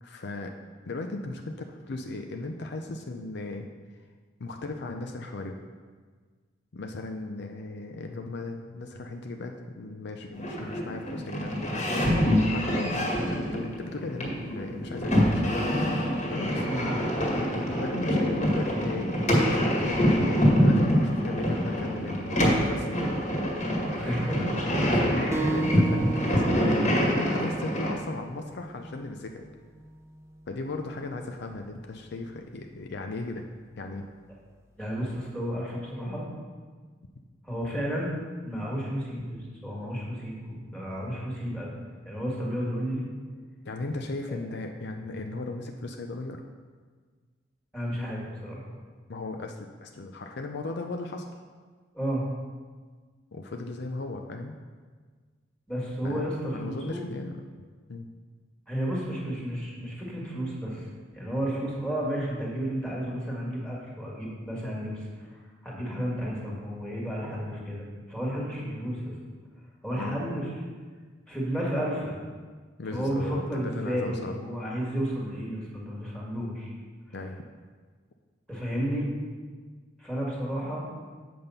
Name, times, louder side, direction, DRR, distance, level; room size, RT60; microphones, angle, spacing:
voice 1, 0.0-0.5 0.8-3.7 4.4-5.6 6.7-11.9 12.5-15.7 16.3-16.7 17.8-20.2 20.6-23.1 24.9-29.5 30.5-33.4 33.8-34.1 43.6-46.4 49.1-51.4 53.3-54.5 56.0-56.2 56.5-57.4 57.9-58.1 70.0-70.2 72.8-74.4 77.1-77.4, left 2 dB, 60° left, 4 dB, 0.5 m, -36 dB
sound 1, 10.3-27.9, equal, 40° left, 1.8 m, -25 dB
voice 2, 23.9-24.5 25.1-25.5 34.8-36.3 37.4-38.2 38.4-41.7 42.1-43.1 44.3-44.4 47.7-48.7 51.9-52.3 55.7-57.0 58.7-69.2 69.8-70.5 71.3-72.2 72.9-76.7 78.5-79.1 80.0-80.8, equal, 5° left, -4 dB, 1.8 m, -32 dB
sound 2, 25.3-30.4, right 2 dB, 15° right, 0.6 m, -35 dB
7.7 x 5.2 x 5.5 m, 1.5 s
head